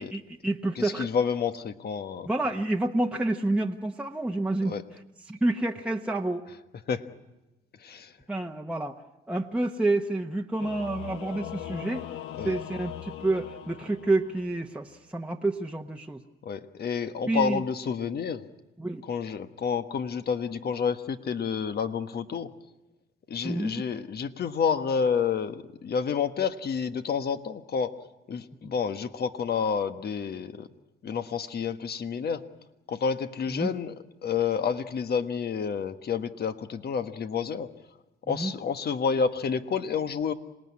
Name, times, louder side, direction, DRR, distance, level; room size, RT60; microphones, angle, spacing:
voice 1, 0.0-1.1 2.2-6.4 8.3-9.0 9.3-12.1 12.4-16.2 17.2-17.6 18.8-19.0 23.4-23.9 33.5-33.7 38.3-38.5, right 2 dB, 5° right, 1 dB, 1.2 m, -29 dB
voice 2, 0.8-2.3 4.6-4.8 6.9-7.0 7.8-8.1 12.4-12.5 16.4-18.4 19.0-22.5 23.3-27.9 28.3-30.7 31.0-32.4 32.9-33.9 34.2-37.7 38.3-40.3, left 6 dB, 55° left, 9 dB, 1.4 m, -29 dB
Singing / Musical instrument, 10.6-14.7, left 11 dB, 85° left, 1.1 m, -40 dB
26.5 x 19.0 x 9.7 m, 1.0 s
cardioid pair, 90°, 20 cm